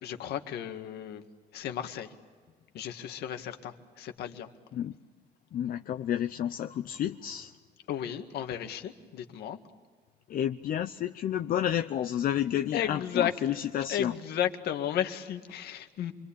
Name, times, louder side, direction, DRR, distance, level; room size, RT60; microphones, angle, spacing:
voice 1, 0.0-1.2 1.5-2.1 2.7-4.5 7.9-9.6 12.7-13.3 13.9-16.1, left 10 dB, 70° left, 6 dB, 2.0 m, -33 dB
voice 2, 5.5-7.5 10.3-14.1, left 10 dB, 55° left, 7 dB, 0.8 m, -30 dB
28.0 x 23.5 x 8.8 m, 1.5 s
cardioid pair, 110°, 17 cm